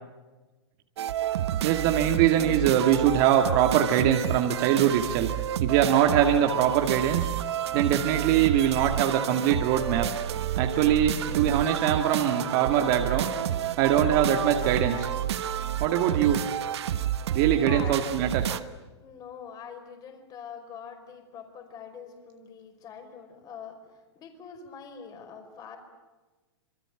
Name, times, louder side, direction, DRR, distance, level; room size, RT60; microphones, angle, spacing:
sound 1, 1.0-18.6, right 11 dB, 70° right, 1.3 m, -30 dB
voice 1, 1.6-5.3 5.6-7.3 7.7-10.1 10.6-13.3 13.8-15.1 15.8-16.4 17.3-18.5, right 10 dB, 45° right, 3 dB, 2.2 m, -23 dB
voice 2, 17.6-18.1 19.0-23.8 24.1-25.8, left 7 dB, 25° left, 6 dB, 5.0 m, -43 dB
27.0 x 24.0 x 9.2 m, 1.2 s
hypercardioid pair, 140°, 15 cm